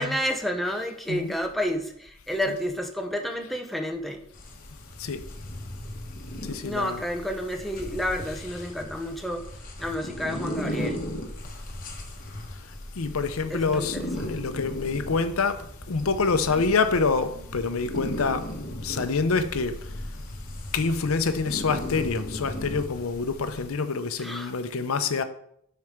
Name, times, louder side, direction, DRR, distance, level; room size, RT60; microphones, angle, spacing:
voice 1, 0.0-4.2 6.6-9.4 9.8-11.0 13.5-14.1 16.5-16.7 24.2-24.5, equal, ahead, 3 dB, 0.7 m, -30 dB
sound 1, 4.3-23.7, equal, 40° left, 1.3 m, -37 dB
voice 2, 6.5-7.0 13.0-14.0 14.3-15.6 15.9-18.4 18.8-19.7 20.7-25.2, left 4 dB, 80° left, 10 dB, 0.7 m, -26 dB
7.6 x 5.7 x 3.7 m, 0.69 s
head